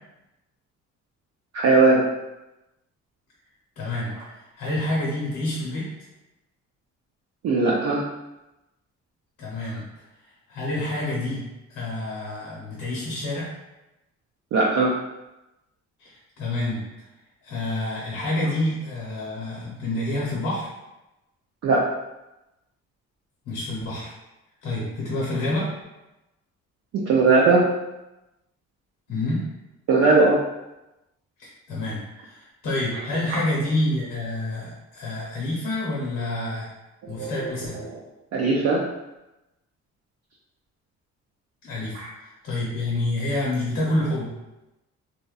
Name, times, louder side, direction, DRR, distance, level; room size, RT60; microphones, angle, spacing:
voice 1, 1.5-2.0 7.4-8.0 14.5-14.9 21.6-21.8 26.9-27.7 29.9-30.4 37.0-37.5 37.8-38.0 38.3-38.8 41.9-42.1, right 3 dB, 60° right, -4 dB, 0.5 m, -19 dB
voice 2, 3.8-5.9 9.4-9.8 10.5-11.4 11.7-13.5 16.0-16.8 17.4-20.7 23.5-24.1 24.6-25.7 29.1-29.4 31.4-36.7 37.1-37.8 41.6-44.3, left 1 dB, 85° left, -5 dB, 0.8 m, -28 dB
2.7 x 2.1 x 2.3 m, 0.97 s
cardioid pair, 90°, 30 cm